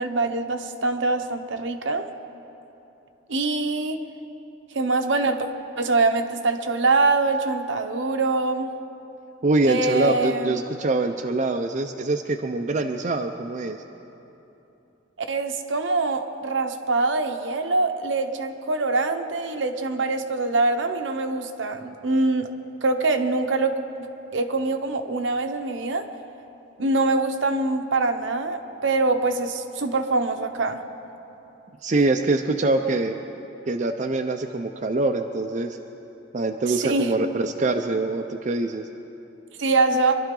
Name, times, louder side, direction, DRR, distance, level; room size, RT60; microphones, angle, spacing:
voice 1, 0.0-2.0 3.3-4.0 4.7-5.5 5.8-8.7 9.6-10.6 15.2-22.5 22.8-26.1 26.8-30.8 36.7-37.1 39.6-40.2, right 3 dB, 70° right, 6 dB, 0.9 m, -24 dB
voice 2, 9.4-13.8 31.8-33.1 33.7-35.8 36.3-38.9, right 2 dB, 40° right, 4 dB, 0.5 m, -24 dB
24.0 x 12.0 x 3.8 m, 3.0 s
head